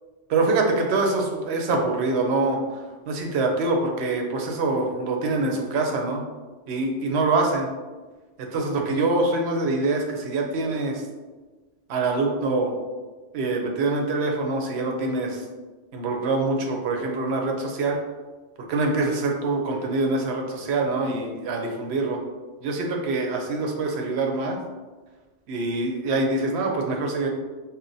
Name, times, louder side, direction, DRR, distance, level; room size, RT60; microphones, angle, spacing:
voice 1, 0.3-2.6 3.1-6.2 6.7-7.7 8.4-11.0 11.9-12.7 13.3-15.4 15.9-18.0 18.7-22.2 22.6-24.6 25.5-27.3, right 3 dB, 65° right, 1 dB, 0.9 m, -24 dB
5.5 x 2.2 x 2.6 m, 1.3 s
omnidirectional pair, 1.2 m